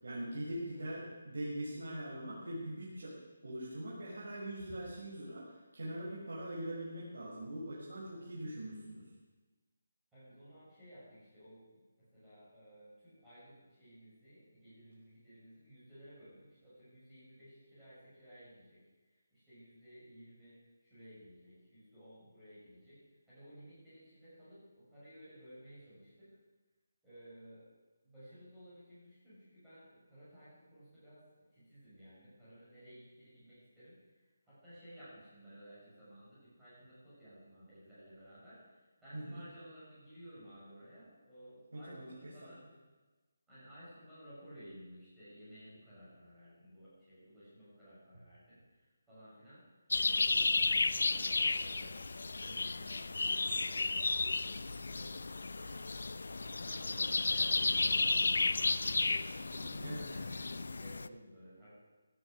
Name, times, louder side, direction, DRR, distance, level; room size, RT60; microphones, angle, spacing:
voice 1, 0.0-3.1 3.4-9.1 39.1-39.4 41.7-42.1 59.8-60.1, right 1 dB, 70° right, -6 dB, 5.5 m, -42 dB
voice 2, 10.1-18.8 19.1-26.4 27.0-27.7 28.0-34.2 34.4-42.6 43.5-49.7 50.2-55.8 56.3-58.5 59.3-61.7, equal, 5° right, -13 dB, 6.4 m, -56 dB
sound 1, 49.9-61.1, left 3 dB, 60° left, 0.6 m, -33 dB
16.5 x 12.5 x 6.4 m, 1.2 s
hypercardioid pair, 180°, 0 cm